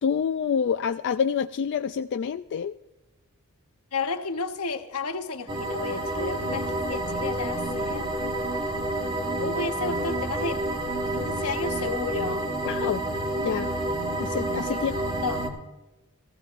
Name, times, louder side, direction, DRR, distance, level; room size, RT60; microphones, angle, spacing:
voice 1, 0.0-2.7 12.6-13.0 13.4-13.7 14.2-14.9, left 7 dB, 50° left, 0.3 m, -27 dB
voice 2, 3.9-8.1 9.4-10.7 11.1-12.5 14.7-15.4, left 4 dB, 80° left, 1.2 m, -32 dB
sound 1, 5.5-15.5, right 1 dB, 20° right, 1.6 m, -29 dB
19.0 x 15.0 x 2.5 m
head